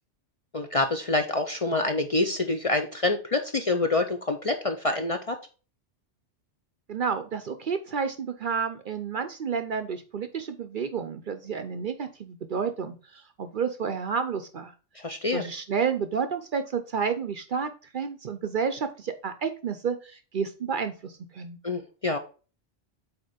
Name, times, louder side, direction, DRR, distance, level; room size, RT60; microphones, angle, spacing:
voice 1, 0.5-5.4 14.9-15.4 21.6-22.2, left 2 dB, 40° left, 5 dB, 0.6 m, -26 dB
voice 2, 6.9-14.7 15.3-21.6, right 6 dB, 55° right, 9 dB, 0.7 m, -30 dB
8.1 x 2.9 x 4.9 m, 0.35 s
omnidirectional pair, 1.2 m